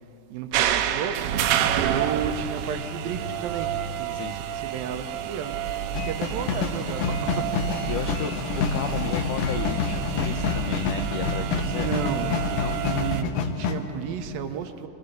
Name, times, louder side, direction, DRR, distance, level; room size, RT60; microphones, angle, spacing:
voice 1, 0.3-1.2 1.8-3.7 4.0-4.1 4.5-5.6 6.1-7.5 11.7-14.9, right 7 dB, 75° right, 7 dB, 2.4 m, -32 dB
sound 1, 0.5-13.2, right 10 dB, 90° right, 2.9 m, -29 dB
sound 2, 5.9-13.8, left 6 dB, 70° left, 2.4 m, -28 dB
voice 2, 7.9-11.9 12.5-12.8, left 9 dB, 90° left, 7 dB, 1.8 m, -34 dB
23.5 x 21.0 x 6.7 m, 2.8 s
omnidirectional pair, 4.6 m